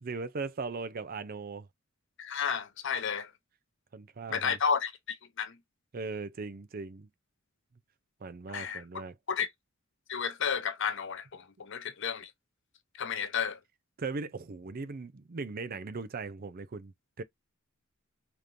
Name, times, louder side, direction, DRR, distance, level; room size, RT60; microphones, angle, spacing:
voice 1, 0.0-1.7 3.9-4.6 5.9-7.1 8.2-9.1 14.0-17.2, right 4 dB, 45° right, 0.5 m, -38 dB
voice 2, 2.2-3.3 4.3-5.6 8.5-8.8 9.3-9.5 10.1-12.3 13.0-13.6, left 6 dB, 60° left, 0.7 m, -32 dB
5.0 x 3.0 x 2.5 m
head